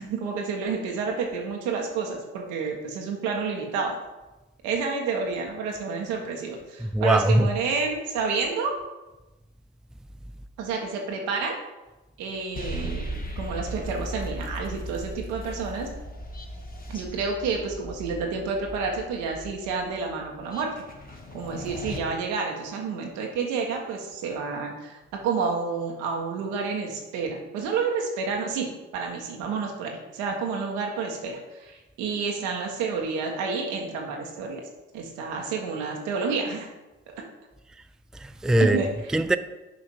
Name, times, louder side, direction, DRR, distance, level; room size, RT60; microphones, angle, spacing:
voice 1, 0.0-4.0 4.6-8.7 10.6-11.6 12.2-13.1 13.4-15.9 16.9-20.8 21.3-34.6 34.9-36.7 37.1-37.2 38.6-38.9, right 5 dB, 85° right, 1.3 m, -29 dB
voice 2, 6.8-7.5 38.2-39.4, right 1 dB, ahead, 0.4 m, -22 dB
sound 1, 12.6-22.0, equal, 30° left, 1.5 m, -37 dB
6.6 x 5.1 x 5.5 m
hypercardioid pair, 45°, 29 cm